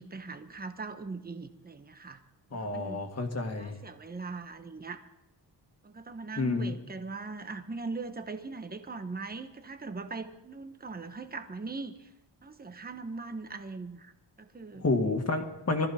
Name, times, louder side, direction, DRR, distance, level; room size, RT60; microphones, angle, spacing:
voice 1, 0.0-2.2 2.5-3.1 3.5-5.0 5.8-12.1 12.4-14.1 14.4-14.8, right 3 dB, 20° right, 8 dB, 1.1 m, -40 dB
voice 2, 2.5-3.8 6.4-6.8 14.8-15.9, left 3 dB, 35° left, 4 dB, 1.9 m, -29 dB
22.5 x 14.5 x 4.3 m, 0.90 s
wide cardioid pair, 160°, 42 cm